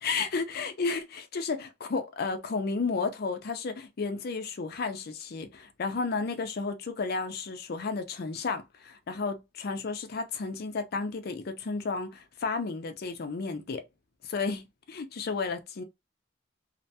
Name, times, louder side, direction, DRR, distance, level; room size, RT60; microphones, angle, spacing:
voice 1, 0.0-13.8 14.2-15.8, left 4 dB, 55° left, 0.5 m, -32 dB
2.5 x 2.2 x 2.6 m
head